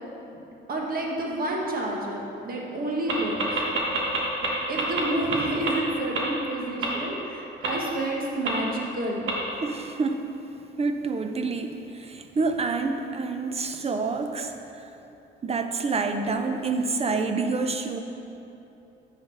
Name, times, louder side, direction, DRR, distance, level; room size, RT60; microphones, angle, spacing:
voice 1, 0.7-3.6 4.7-9.2 14.3-14.6, right 1 dB, 45° right, -1 dB, 1.5 m, -29 dB
sound 1, 3.1-3.2 3.4-4.5 4.8-5.0 5.3-5.4 5.7-5.8 6.1-6.2 6.8-6.9 7.6-7.7 8.5-8.6 9.3-9.4, right 4 dB, 75° right, 1.5 m, -25 dB
voice 2, 9.6-10.3 10.8-14.5 15.4-18.0, right 4 dB, 30° right, 6 dB, 0.6 m, -27 dB
8.9 x 4.1 x 5.4 m, 2.9 s
cardioid pair, 90°, 20 cm